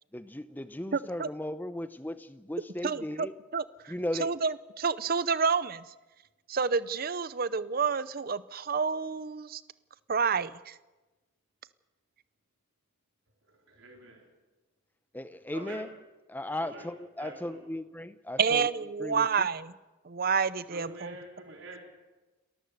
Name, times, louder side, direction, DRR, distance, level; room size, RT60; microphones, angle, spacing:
voice 1, 0.1-3.3 3.9-4.3 15.1-15.9 16.3-18.7 19.0-19.3, left 1 dB, 10° left, 12 dB, 0.7 m, -36 dB
voice 2, 0.9-1.3 2.8-3.3 3.5-3.9 4.2-5.8 6.5-9.6 10.1-10.8 18.4-19.7 20.0-21.1, right 5 dB, 45° right, 17 dB, 0.6 m, -29 dB
voice 3, 13.7-14.2 15.5-15.9 16.6-16.9 17.2-17.7 20.7-21.8, right 2 dB, 75° right, -1 dB, 4.3 m, -45 dB
30.0 x 13.5 x 6.7 m, 1.2 s
head